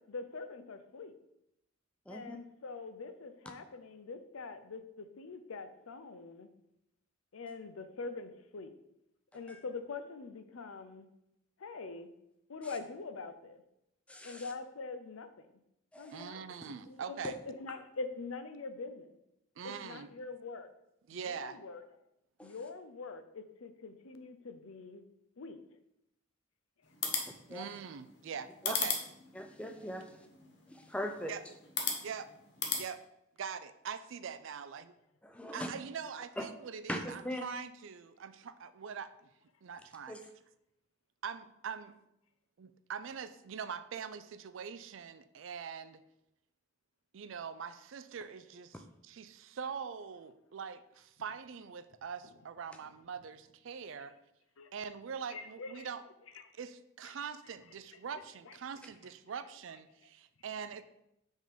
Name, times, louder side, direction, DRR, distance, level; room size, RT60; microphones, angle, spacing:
voice 1, 0.1-1.1 2.1-6.5 7.3-8.7 9.3-11.1 11.6-12.1 12.5-13.6 14.2-15.6 16.0-16.4 16.6-19.1 19.6-20.7 21.1-21.8 22.4-25.0 25.4-25.6 54.6-54.7 55.3-55.9 56.3-56.4 58.5-58.6, left 3 dB, 90° left, 9 dB, 0.6 m, -44 dB
voice 2, 2.1-2.4 9.5-9.6 14.1-14.5 15.9-16.2 22.4-22.5 27.5-27.7 28.6-28.8 29.3-30.3 30.7-31.3 35.4-35.7 36.4-36.5 36.9-37.4 40.1-40.2 48.7-48.8, left 1 dB, 5° left, 4 dB, 0.5 m, -40 dB
voice 3, 16.1-17.3 19.6-20.1 21.1-21.6 27.5-28.9 31.3-31.4 32.0-32.3 32.8-33.0 33.4-34.9 35.5-39.3 39.6-40.2 41.2-41.9 42.6-46.0 47.1-48.8 49.0-54.1 54.7-56.0 56.5-60.8, right 6 dB, 70° right, 13 dB, 0.4 m, -43 dB
sound 1, 26.8-32.8, left 5 dB, 55° left, 0.9 m, -39 dB
5.3 x 3.7 x 5.1 m, 0.83 s
head